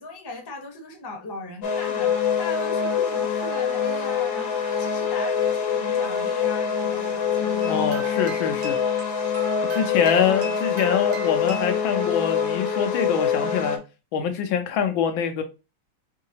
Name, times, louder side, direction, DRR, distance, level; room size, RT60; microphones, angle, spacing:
voice 1, 0.0-8.0, left 3 dB, 20° left, 0.6 m, -38 dB
sound 1, 1.6-13.8, left 7 dB, 60° left, 1.3 m, -25 dB
voice 2, 7.6-8.8 9.7-13.8 14.1-15.4, left 7 dB, 85° left, 1.5 m, -24 dB
sound 2, 7.6-11.8, right 3 dB, 75° right, 1.9 m, -39 dB
5.4 x 2.8 x 2.7 m
omnidirectional pair, 2.1 m